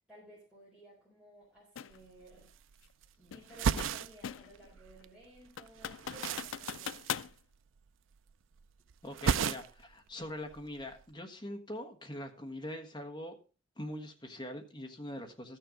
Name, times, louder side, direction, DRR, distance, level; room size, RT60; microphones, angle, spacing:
voice 1, 0.1-2.5 3.2-7.0, right 1 dB, 5° right, -7 dB, 4.3 m, -57 dB
sound 1, 1.8-2.0 3.3-4.6 5.0-5.1 5.6-7.3, left 8 dB, 80° left, 0.4 m, -40 dB
sound 2, 1.9-2.0 2.2-3.1 3.4-5.1 5.3-7.9 8.1-8.6 8.9-9.9 10.2-11.0, right 6 dB, 75° right, 0.4 m, -35 dB
voice 2, 9.0-13.4 13.8-15.6, left 1 dB, 20° left, 3 dB, 1.4 m, -43 dB
13.5 x 6.7 x 5.0 m, 0.35 s
head